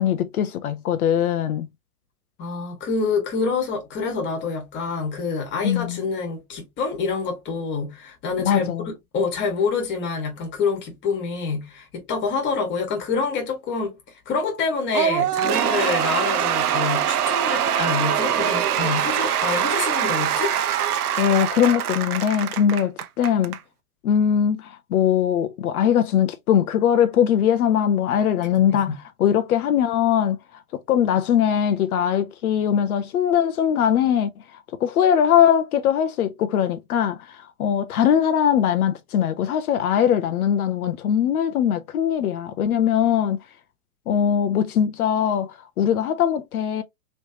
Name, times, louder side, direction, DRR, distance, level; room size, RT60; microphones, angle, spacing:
voice 1, 0.0-1.7 5.6-6.0 8.4-8.9 21.2-23.6 24.0-43.4 44.1-46.8, left 9 dB, 75° left, 0.7 m, -21 dB
voice 2, 2.4-13.9 14.2-20.5 28.7-28.9, left 4 dB, 25° left, 1.5 m, -27 dB
Cheering / Applause / Crowd, 14.9-23.6, right 9 dB, 90° right, 0.7 m, -23 dB
3.1 x 3.1 x 2.7 m
hypercardioid pair, 135°, 44 cm